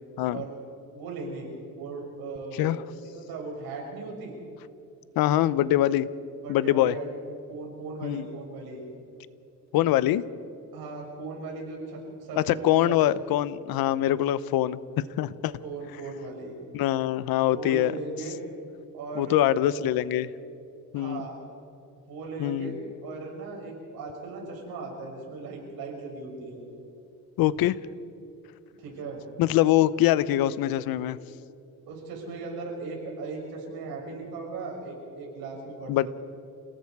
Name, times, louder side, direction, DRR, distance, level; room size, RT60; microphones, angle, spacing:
voice 1, 0.9-4.3 6.4-7.1 7.5-8.8 10.7-13.2 15.6-16.5 17.4-18.4 18.9-19.9 20.9-21.4 22.1-26.6 28.8-29.2 31.9-36.1, right 3 dB, 90° right, 0 dB, 6.6 m, -38 dB
voice 2, 5.2-6.1 6.5-6.9 8.0-8.3 9.7-10.2 12.4-15.5 16.7-17.9 19.2-20.3 20.9-21.2 22.4-22.8 27.4-27.8 29.4-31.2 35.9-36.1, left 13 dB, 80° left, 17 dB, 0.8 m, -24 dB
29.5 x 18.5 x 4.8 m, 2.8 s
cardioid pair, 130°, 35 cm